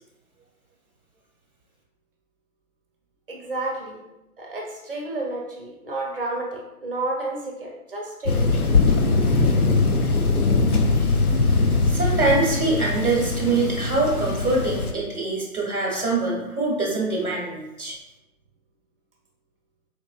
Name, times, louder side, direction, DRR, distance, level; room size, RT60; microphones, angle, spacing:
voice 1, 3.3-4.0 4.4-8.5, right 2 dB, 40° right, -1 dB, 0.7 m, -31 dB
Thunder, 8.3-14.9, left 3 dB, 85° left, 0.6 m, -21 dB
voice 2, 11.9-17.9, right 3 dB, 5° right, -16 dB, 0.6 m, -24 dB
4.1 x 2.9 x 2.2 m, 0.94 s
figure-of-eight pair, 140°, 43 cm